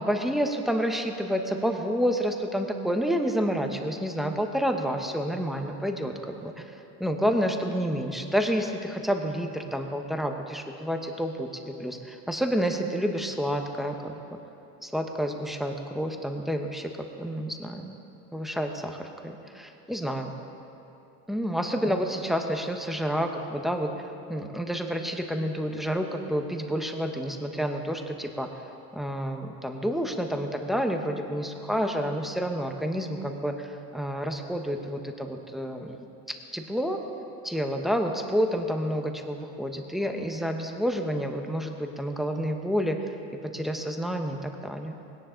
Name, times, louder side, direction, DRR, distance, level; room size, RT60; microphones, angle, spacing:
voice 1, 0.0-14.1 14.8-16.9 17.2-17.9 18.3-20.3 21.3-28.5 28.9-37.0 37.4-43.1 43.5-44.9, equal, ahead, 4 dB, 1.0 m, -29 dB
20.0 x 17.0 x 3.9 m, 2.8 s
cardioid pair, 140°, 34 cm